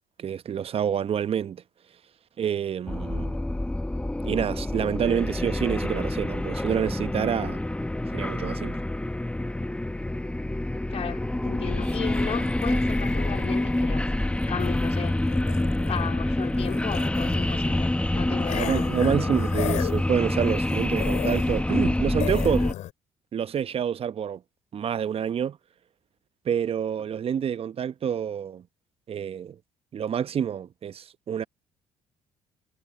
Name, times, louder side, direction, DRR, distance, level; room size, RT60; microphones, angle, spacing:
voice 1, 0.2-1.6 2.4-3.4 4.2-7.6 8.1-8.8 18.5-22.7 23.3-24.4 24.7-25.6 26.4-28.6 29.1-29.6 29.9-31.4, right 8 dB, 50° right, 1.1 m, -28 dB
sound 1, 2.9-22.7, left 1 dB, 10° left, 1.2 m, -27 dB
voice 2, 10.9-14.1 14.5-15.2 15.9-19.4, left 8 dB, 55° left, 3.6 m, -35 dB
sound 2, 11.8-16.1 16.4-17.6 18.4-21.9 22.2-22.9, left 14 dB, 70° left, 4.3 m, -38 dB
hypercardioid pair, 50°, 13 cm